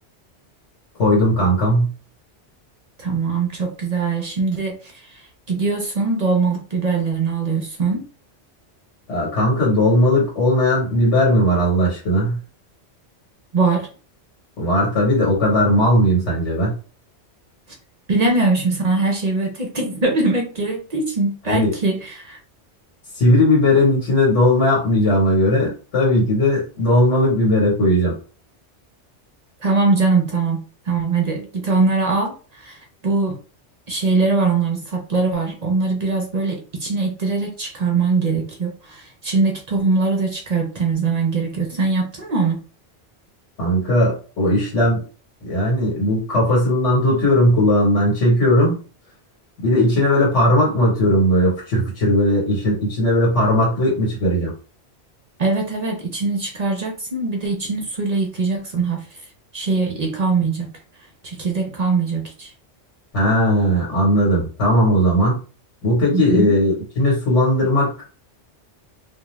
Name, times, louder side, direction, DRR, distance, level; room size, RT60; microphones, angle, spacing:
voice 1, 1.0-1.9 9.1-12.4 14.6-16.7 21.5-21.7 23.1-28.1 43.6-45.0 45.4-48.8 49.6-54.5 63.1-65.4 65.8-67.9, left 1 dB, 75° left, -4 dB, 1.5 m, -17 dB
voice 2, 3.0-5.2 5.5-8.0 13.5-13.9 18.1-22.4 29.6-32.8 33.0-33.4 33.9-42.6 55.4-59.1 59.5-60.7 61.2-62.5 66.1-66.5, right 3 dB, 45° right, 1 dB, 0.6 m, -22 dB
2.6 x 2.3 x 3.1 m, 0.36 s
omnidirectional pair, 1.2 m